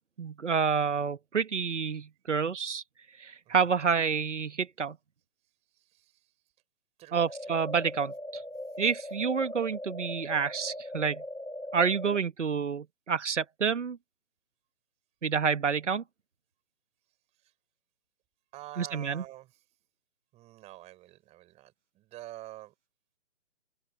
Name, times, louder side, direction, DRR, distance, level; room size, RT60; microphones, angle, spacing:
voice 1, 0.2-2.8 3.2-5.0 7.1-8.1 8.8-11.2 11.7-14.0 15.2-16.0 18.8-19.2, right 6 dB, 70° right, 1.6 m, -28 dB
voice 2, 5.7-6.3 7.0-7.6 9.4-9.5 17.4-17.5 18.5-19.6 20.3-22.7, right 16 dB, 15° right, 5.8 m, -48 dB
sound 1, 7.2-12.2, left 1 dB, 85° left, 4.6 m, -40 dB
open air
figure-of-eight pair, 140°, 37 cm